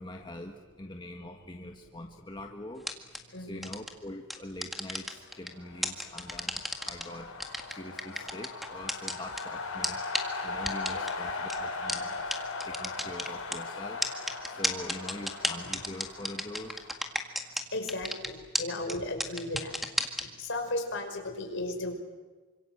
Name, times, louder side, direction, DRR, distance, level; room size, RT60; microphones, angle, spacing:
voice 1, 0.0-2.8 3.4-7.3 7.7-10.0 10.4-12.4 12.6-14.0 14.5-16.8, left 1 dB, 20° left, 2 dB, 1.6 m, -43 dB
sound 1, 2.8-3.2 3.6-3.9 4.3-5.5 5.8-7.0 7.4-9.4 9.8-9.9 10.1-10.2 10.7-11.1 11.5-11.6 11.9-12.0 12.3-12.4 12.6-13.6 14.0-17.6 17.9-18.3 18.5-18.6 18.9-19.0 19.2-20.2, equal, ahead, 1.9 m, -31 dB
voice 2, 3.3-3.7 10.9-11.1 17.7-19.8 20.1-21.9, left 2 dB, 55° left, 4 dB, 5.5 m, -35 dB
sound 2, 5.5-17.4, left 3 dB, 85° left, 6.0 m, -39 dB
28.5 x 26.0 x 7.9 m, 1.3 s
head